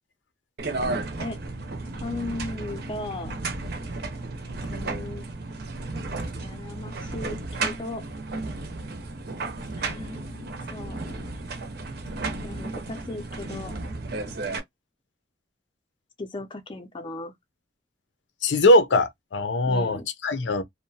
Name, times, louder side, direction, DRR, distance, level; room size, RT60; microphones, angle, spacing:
sound 1, 0.6-14.6, right 3 dB, 60° right, 0.7 m, -33 dB
voice 1, 2.0-3.3 4.7-5.3 6.4-8.0 9.8-11.3 12.4-13.7 16.2-17.3 19.7-20.1, left 2 dB, 25° left, 0.5 m, -37 dB
voice 2, 18.4-20.6, left 1 dB, 90° left, 0.6 m, -21 dB
2.7 x 2.1 x 2.6 m
head